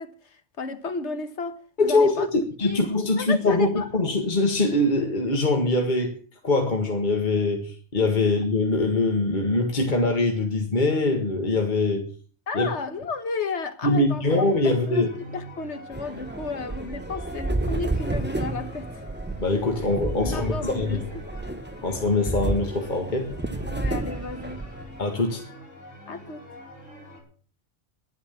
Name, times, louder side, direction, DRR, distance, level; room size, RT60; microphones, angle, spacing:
voice 1, 0.0-2.8 3.2-3.9 12.5-15.1 15.3-19.0 20.2-21.2 23.7-24.6 26.1-26.4, left 4 dB, 65° left, 1.7 m, -33 dB
voice 2, 1.8-6.1 6.4-12.1 12.5-12.7 13.8-15.1 19.4-21.0 21.8-23.3 25.0-25.5, left 2 dB, 40° left, 1.9 m, -23 dB
sound 1, 14.1-27.2, equal, 85° left, 5.8 m, -44 dB
sound 2, 15.9-25.0, right 2 dB, 15° right, 0.5 m, -31 dB
11.5 x 11.0 x 7.2 m
omnidirectional pair, 1.3 m